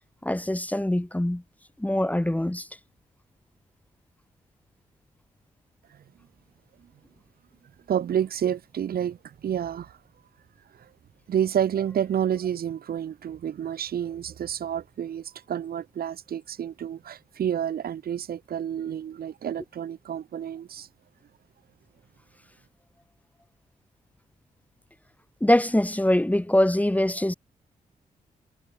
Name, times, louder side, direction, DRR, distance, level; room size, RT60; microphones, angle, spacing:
voice 1, 0.2-1.4 1.8-2.7 25.4-27.3, left 1 dB, 10° left, 1.6 m, -23 dB
voice 2, 7.9-10.0 11.3-20.9, right 9 dB, 70° right, 1.8 m, -29 dB
supercardioid pair, 45°, 16 cm